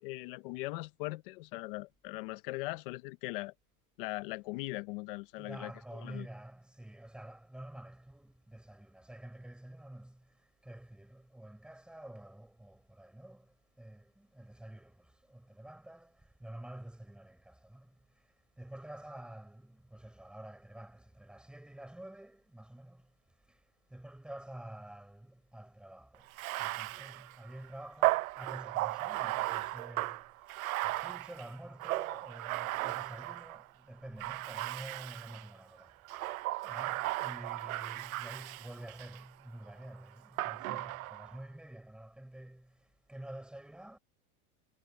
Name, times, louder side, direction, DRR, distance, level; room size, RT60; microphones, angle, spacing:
voice 1, 0.0-3.5 4.0-5.7 6.0-6.3, left 21 dB, 35° left, 0.8 m, -40 dB
voice 2, 5.4-10.2 10.6-13.4 13.8-14.9 15.3-16.1 16.4-17.9 18.6-23.0 23.9-26.2 26.6-30.2 30.8-35.9 36.6-42.7 43.1-44.0, right 1 dB, ahead, 5.9 m, -49 dB
Bathtub (filling or washing), 26.3-33.6 34.2-35.5 36.0-39.2 40.4-41.4, right 18 dB, 65° right, 0.9 m, -36 dB
supercardioid pair, 175°, 45 cm